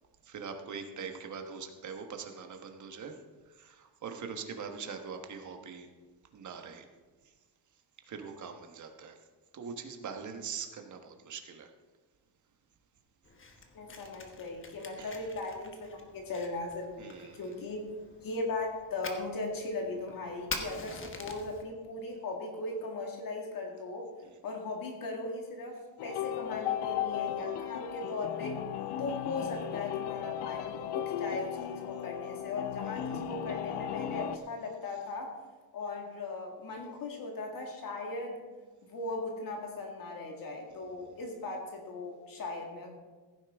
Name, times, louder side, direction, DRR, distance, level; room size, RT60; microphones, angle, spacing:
voice 1, 0.2-5.9 6.3-6.9 7.2-7.3 8.0-9.2 9.5-11.7 15.0-15.2 17.0-17.5 24.2-24.4 27.4-27.5 32.8-33.2 40.8-41.2, right 6 dB, 40° right, 5 dB, 1.3 m, -43 dB
Fire, 13.2-21.6, left 4 dB, 30° left, 1.2 m, -46 dB
voice 2, 13.7-17.8 18.2-24.1 24.4-28.6 29.0-35.4 35.7-38.4 38.8-43.0, left 3 dB, 50° left, 1 dB, 1.9 m, -38 dB
sound 1, 26.0-34.4, left 10 dB, 70° left, 0.7 m, -36 dB
15.5 x 9.7 x 3.6 m, 1.3 s
cardioid pair, 145°, 43 cm